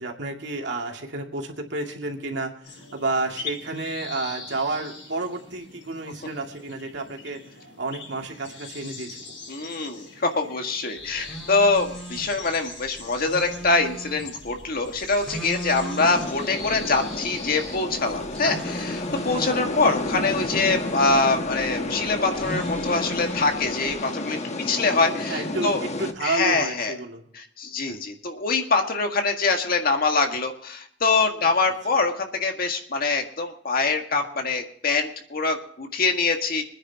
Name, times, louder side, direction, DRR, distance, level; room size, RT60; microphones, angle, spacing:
voice 1, 0.0-7.4 7.8-9.2 25.3-27.2 27.8-28.0, right 2 dB, 70° right, 2 dB, 2.5 m, -30 dB
sound 1, 2.6-19.3, left 4 dB, 75° left, 5.9 m, -42 dB
voice 2, 9.5-24.4 24.7-25.8 26.2-26.9 27.3-36.6, left 3 dB, 55° left, 4 dB, 1.8 m, -24 dB
sound 2, 11.0-23.9, right 1 dB, 5° left, 5.5 m, -39 dB
sound 3, 16.0-26.1, left 2 dB, 40° left, 1.2 m, -31 dB
25.0 x 9.9 x 2.9 m, 0.66 s
head